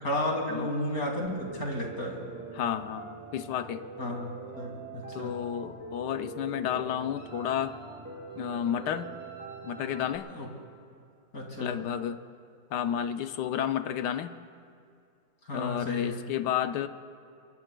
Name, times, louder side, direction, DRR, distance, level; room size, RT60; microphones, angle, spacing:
voice 1, 0.0-2.3 4.0-5.4 10.2-10.5 11.3-11.8 15.4-16.2, left 1 dB, 50° left, 1 dB, 2.6 m, -33 dB
Piano, 1.4-10.2, right 4 dB, 20° right, 1.7 m, -43 dB
voice 2, 2.5-3.8 5.1-7.7 8.4-9.1 9.6-10.3 11.6-12.2 12.7-14.4 15.5-16.9, left 9 dB, 70° left, 10 dB, 1.1 m, -31 dB
Wind instrument woodwind instrument, 7.2-10.4, right 2 dB, 45° right, 3.5 m, -53 dB
25.5 x 23.0 x 2.2 m, 2.4 s
omnidirectional pair, 2.1 m